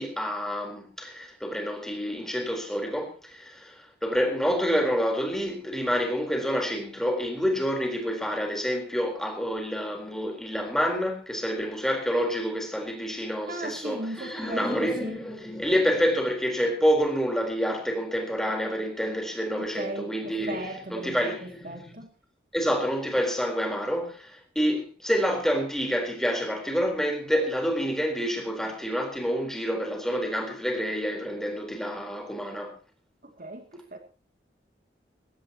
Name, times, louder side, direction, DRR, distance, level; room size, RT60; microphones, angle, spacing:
voice 1, 0.0-21.9 22.5-32.7, equal, 5° left, 4.1 m, -28 dB
voice 2, 13.5-15.2 19.6-22.1 33.2-34.0, right 1 dB, 50° right, 2.5 m, -37 dB
21.5 x 16.5 x 3.0 m
head